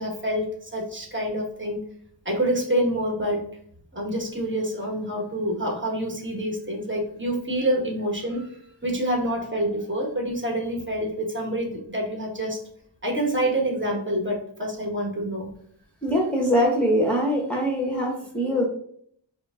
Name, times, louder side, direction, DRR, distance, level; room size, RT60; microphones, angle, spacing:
voice 1, 0.0-1.8 2.2-3.4 3.9-12.6 13.0-15.5, right 1 dB, 25° right, -1 dB, 1.4 m, -27 dB
voice 2, 16.0-18.7, equal, 5° left, -3 dB, 0.8 m, -23 dB
5.0 x 2.0 x 3.5 m, 0.64 s
wide cardioid pair, 40°, 48 cm